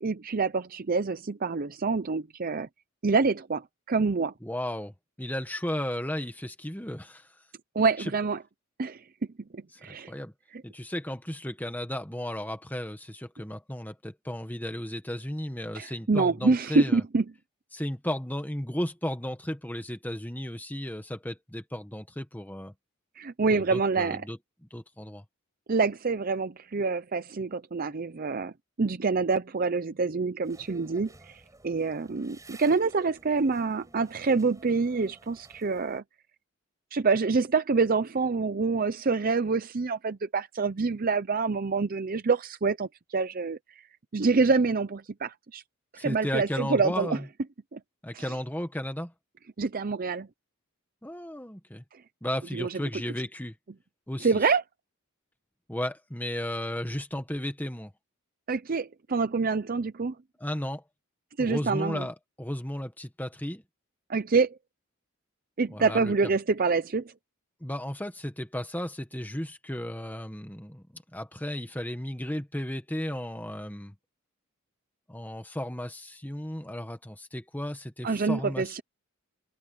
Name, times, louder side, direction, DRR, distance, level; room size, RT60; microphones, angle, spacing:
voice 1, 0.0-2.7 3.0-4.3 7.8-8.4 8.8-9.0 9.5-10.1 10.5-10.6 15.7-17.2 23.2-24.2 25.7-28.5 28.8-36.0 36.9-43.6 44.1-45.6 45.9-47.2 47.7-47.8 48.1-48.3 49.6-50.3 52.5-52.8 54.2-54.6 58.5-60.1 61.4-62.0 64.1-64.6 65.6-67.1 78.0-78.8, right 4 dB, 40° right, 0.6 m, -26 dB
voice 2, 4.4-4.9 5.2-7.3 8.0-8.1 9.9-10.3 10.6-17.0 17.7-22.7 23.5-24.4 24.7-25.2 45.9-47.3 48.0-49.1 51.0-51.8 52.2-53.5 54.1-54.5 55.7-57.9 60.4-60.8 61.4-63.6 65.7-66.1 67.6-73.9 75.1-78.8, left 1 dB, 10° left, 1.5 m, -34 dB
sound 1, 30.4-36.0, right 2 dB, 15° right, 6.2 m, -54 dB
open air
head